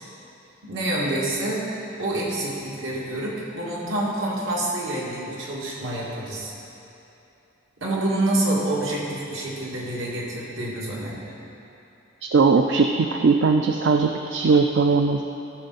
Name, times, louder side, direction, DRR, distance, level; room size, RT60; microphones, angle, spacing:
voice 1, 0.6-1.6 2.0-6.5 7.8-11.2, right 1 dB, 80° right, -5 dB, 2.1 m, -27 dB
voice 2, 12.2-15.2, right 4 dB, 60° right, 5 dB, 0.4 m, -19 dB
14.0 x 6.4 x 4.1 m, 2.9 s
head